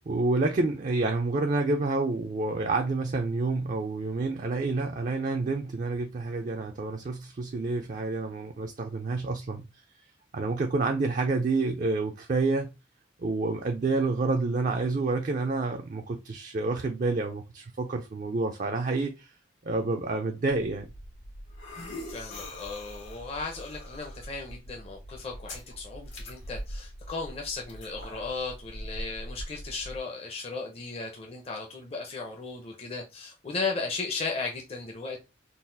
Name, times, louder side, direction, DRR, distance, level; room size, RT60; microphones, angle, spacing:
voice 1, 0.1-9.6 10.3-12.7 13.2-19.3 19.6-20.9, right 3 dB, 40° right, 0.4 m, -28 dB
sound 1, 20.5-30.0, equal, 90° left, 1.6 m, -42 dB
voice 2, 22.1-35.2, left 4 dB, 30° left, 0.6 m, -36 dB
3.9 x 2.4 x 2.6 m
head